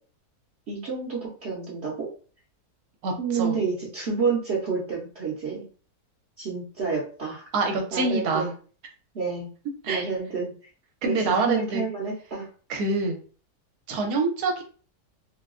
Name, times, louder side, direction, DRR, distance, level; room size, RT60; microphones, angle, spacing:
voice 1, 0.7-2.1 3.2-5.6 6.4-7.4 7.9-8.5 9.1-9.5 9.9-10.5 11.0-12.5, right 5 dB, 50° right, -4 dB, 0.9 m, -29 dB
voice 2, 7.5-8.5 9.8-10.1 11.0-11.8 12.7-13.2 13.9-14.6, right 3 dB, 80° right, 2 dB, 1.3 m, -25 dB
3.8 x 2.2 x 2.5 m, 0.40 s
omnidirectional pair, 1.7 m